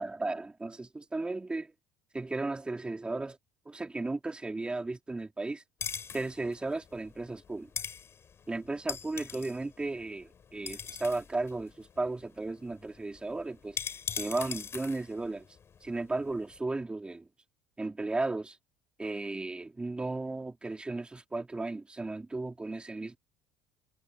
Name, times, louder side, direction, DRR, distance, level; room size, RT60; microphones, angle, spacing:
voice 1, 0.0-1.7 2.1-3.4 3.7-5.6 6.1-7.7 8.5-13.8 14.1-15.4 15.8-17.3 17.8-18.6 19.0-23.2, right 2 dB, 10° right, 3.9 m, -35 dB
sound 1, 5.8-16.6, left 7 dB, 35° left, 6.1 m, -42 dB
cardioid pair, 125°, 8 cm